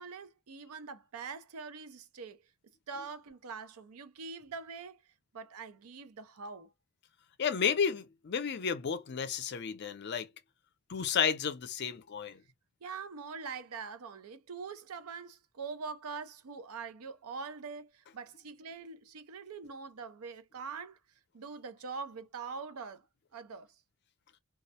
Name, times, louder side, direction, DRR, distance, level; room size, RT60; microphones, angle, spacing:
voice 1, 0.0-2.4 2.9-5.0 5.3-6.7 12.8-21.0 21.3-23.0 23.3-23.7, right 5 dB, 85° right, 0.5 m, -43 dB
voice 2, 7.4-10.3 10.9-12.4, left 7 dB, 50° left, 0.4 m, -32 dB
2.3 x 2.0 x 2.7 m
head